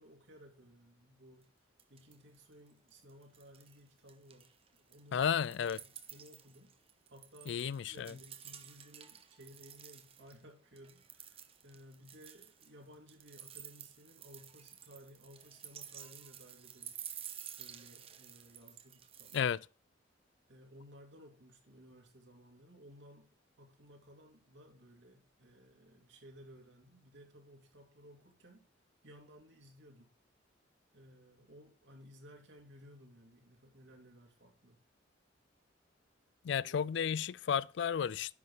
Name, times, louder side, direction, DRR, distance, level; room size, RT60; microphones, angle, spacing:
voice 1, 0.0-1.5 1.9-5.2 5.6-6.8 7.1-17.0 17.6-19.5 20.5-23.3 23.6-28.7 29.0-30.1 30.9-34.8 36.6-36.8, equal, 70° right, 2.8 m, -58 dB
sound 1, 1.4-1.5 1.8-2.4 2.7-3.8 4.1-10.4 10.8-19.4, right 9 dB, 30° right, 0.8 m, -51 dB
voice 2, 5.1-5.8 7.5-8.1 19.3-19.6 36.4-38.3, left 7 dB, 65° left, 0.3 m, -33 dB
11.0 x 7.7 x 3.9 m
head